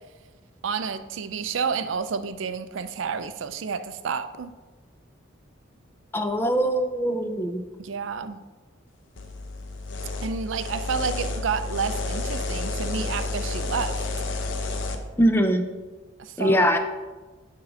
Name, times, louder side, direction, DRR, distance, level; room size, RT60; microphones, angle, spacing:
voice 1, 0.6-4.5 7.8-8.4 10.2-14.1 16.2-16.6, right 6 dB, 80° right, 11 dB, 0.5 m, -30 dB
voice 2, 6.1-7.6 15.2-15.6 16.4-16.8, equal, 10° left, 7 dB, 0.4 m, -22 dB
sound 1, 9.2-15.0, left 3 dB, 75° left, 0.7 m, -30 dB
8.8 x 3.8 x 5.1 m, 1.3 s
head